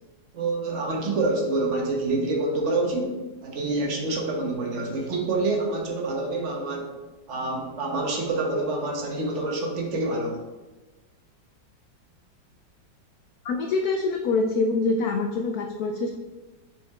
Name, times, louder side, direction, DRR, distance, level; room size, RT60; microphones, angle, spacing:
voice 1, 0.3-6.9 7.3-10.4, right 2 dB, 45° right, 0 dB, 1.3 m, -27 dB
voice 2, 13.4-16.1, left 3 dB, 70° left, 3 dB, 0.9 m, -25 dB
7.6 x 4.4 x 3.5 m, 1.2 s
omnidirectional pair, 2.0 m